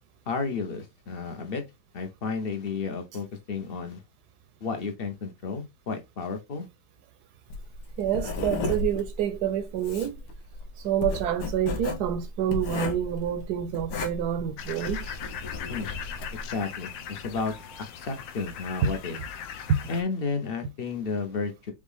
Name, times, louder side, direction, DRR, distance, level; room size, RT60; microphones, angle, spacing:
voice 1, 0.3-1.6 1.9-4.0 4.6-6.7 15.7-15.9 16.5-17.5 18.0-19.2 19.9-21.7, left 4 dB, 45° left, 0.7 m, -32 dB
Writing, 7.5-16.5, left 3 dB, 65° left, 1.5 m, -34 dB
voice 2, 8.0-10.2 10.8-15.1 18.8-18.9 19.7-19.8, right 9 dB, 70° right, 1.0 m, -27 dB
sound 1, 14.6-20.0, left 8 dB, 85° left, 1.4 m, -39 dB
5.3 x 2.4 x 3.3 m
omnidirectional pair, 2.0 m